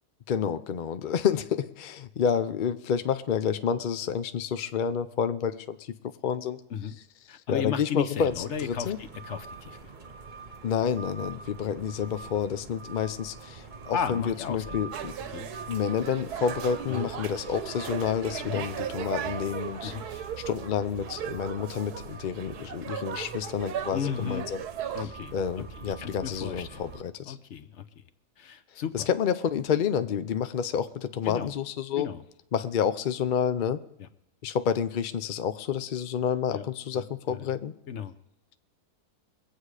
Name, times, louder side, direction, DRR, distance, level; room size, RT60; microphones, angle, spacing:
voice 1, 0.3-5.9 6.2-6.6 7.5-9.0 10.6-15.1 15.7-19.9 20.5-24.6 25.3-27.4 28.9-32.1 32.5-33.8 34.4-37.7, left 7 dB, 75° left, 11 dB, 0.4 m, -29 dB
voice 2, 7.3-9.8 13.9-14.8 15.3-15.5 16.9-17.1 18.4-18.6 19.8-20.1 23.9-24.4 24.9-25.3 26.0-26.8 27.3-27.8 28.4-29.1 31.2-31.5 32.0-32.2 36.5-36.6 36.9-37.4 37.9-38.1, left 7 dB, 55° left, 9 dB, 1.0 m, -34 dB
sound 1, 8.2-27.0, right 4 dB, 35° right, 1.0 m, -44 dB
sound 2, 14.9-25.0, right 9 dB, 80° right, 1.3 m, -37 dB
22.5 x 8.5 x 4.9 m, 0.85 s
omnidirectional pair, 1.7 m